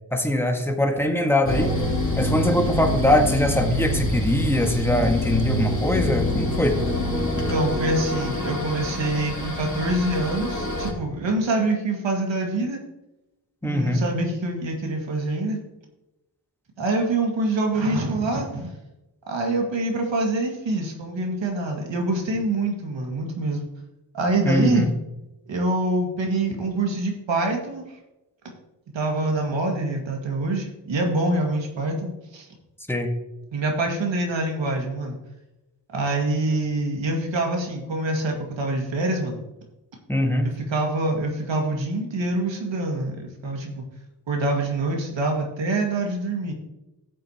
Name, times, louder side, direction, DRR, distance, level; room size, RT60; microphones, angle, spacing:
voice 1, 0.1-1.7 2.2-6.8 13.6-14.0 24.4-24.9 32.9-33.1 40.1-40.5, left 1 dB, 5° left, 4 dB, 1.6 m, -22 dB
sound 1, 1.5-10.9, left 1 dB, 40° left, 2.9 m, -26 dB
voice 2, 7.4-12.8 13.6-15.6 16.8-18.7 19.3-23.7 24.1-24.9 25.5-27.8 28.9-32.5 33.5-35.2 35.9-39.4 40.4-43.8 44.3-46.5, right 2 dB, 85° right, 1 dB, 2.1 m, -25 dB
13.0 x 7.8 x 2.9 m, 0.95 s
cardioid pair, 50°, 44 cm